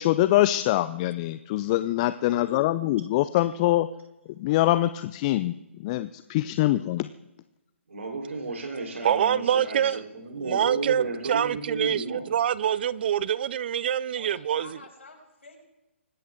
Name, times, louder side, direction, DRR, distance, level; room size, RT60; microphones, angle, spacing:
voice 1, 0.0-3.9 4.4-5.5 5.8-7.1, left 15 dB, 30° left, 0.4 m, -24 dB
voice 2, 7.9-12.3, right 3 dB, 70° right, 3.9 m, -33 dB
voice 3, 9.0-10.0 10.4-11.0 11.3-14.8, right 9 dB, 50° right, 0.5 m, -25 dB
voice 4, 14.1-15.6, left 3 dB, 80° left, 6.7 m, -49 dB
25.0 x 12.5 x 3.7 m
figure-of-eight pair, 135°, 7 cm